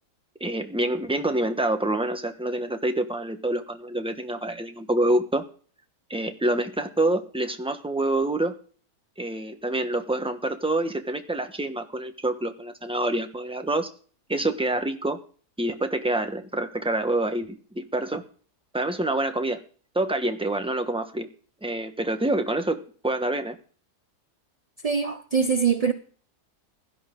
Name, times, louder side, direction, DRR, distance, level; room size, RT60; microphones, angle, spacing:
voice 1, 0.4-5.4 6.1-8.5 9.2-13.9 14.3-15.2 15.6-18.2 18.7-19.6 19.9-21.3 21.6-23.6, right 1 dB, 5° right, 0.9 m, -27 dB
voice 2, 24.8-25.9, right 6 dB, 50° right, 0.4 m, -23 dB
16.5 x 11.0 x 3.8 m
omnidirectional pair, 1.7 m